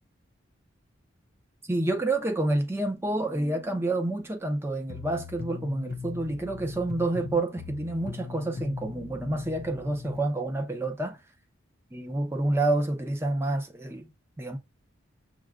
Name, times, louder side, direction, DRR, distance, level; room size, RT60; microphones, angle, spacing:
voice 1, 1.7-11.2 11.9-14.6, right 2 dB, 15° right, 0.6 m, -28 dB
sound 1, 4.9-10.2, left 4 dB, 50° left, 0.4 m, -39 dB
6.0 x 2.1 x 2.4 m
head